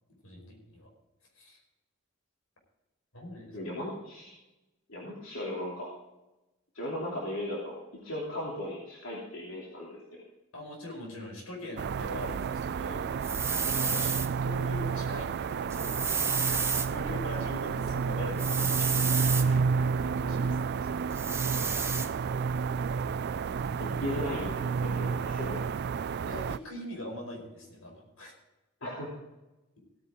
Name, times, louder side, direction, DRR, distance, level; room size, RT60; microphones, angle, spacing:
voice 1, 0.2-0.9 1.3-1.6 3.1-3.7 10.5-13.1 13.8-14.1 14.4-16.0 16.4-19.1 19.4-21.5 22.2-22.4 26.2-28.3, left 1 dB, 90° left, 1 dB, 5.0 m, -43 dB
voice 2, 3.5-4.3 4.9-5.9 6.7-10.2 23.8-25.6 28.8-29.1, left 1 dB, 70° left, -5 dB, 3.1 m, -37 dB
sound 1, 11.8-26.6, right 5 dB, 50° right, 0.4 m, -30 dB
sound 2, 13.2-14.3 15.7-16.9 18.4-19.5 21.1-22.1, right 5 dB, 15° right, 0.9 m, -30 dB
16.5 x 9.6 x 3.8 m, 1.0 s
head